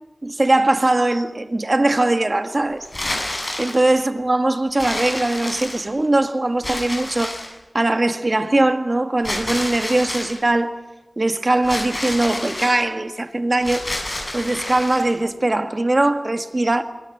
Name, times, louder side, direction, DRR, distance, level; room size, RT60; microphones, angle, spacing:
voice 1, 0.2-2.9 3.6-7.4 7.7-10.8 11.2-13.8 14.3-16.8, right 2 dB, 45° right, 1.8 m, -20 dB
sound 1, 2.8-3.9 4.8-6.1 6.6-7.6 9.2-10.4 11.6-12.8 13.6-15.1, left 1 dB, 45° left, 7.6 m, -29 dB
27.0 x 21.5 x 7.9 m
wide cardioid pair, 65°, 0 cm